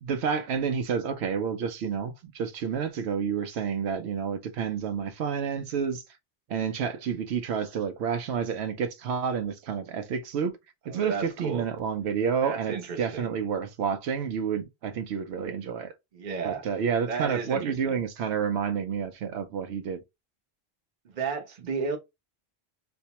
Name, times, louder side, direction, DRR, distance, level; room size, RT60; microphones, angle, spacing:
voice 1, 0.0-6.0 6.5-10.6 10.9-15.9 16.4-20.0, right 7 dB, 80° right, 0.8 m, -29 dB
voice 2, 10.9-11.7 12.4-13.3 16.1-16.6 17.1-18.0 21.0-22.0, right 5 dB, 50° right, 0.8 m, -33 dB
4.3 x 2.1 x 2.8 m
omnidirectional pair, 1.1 m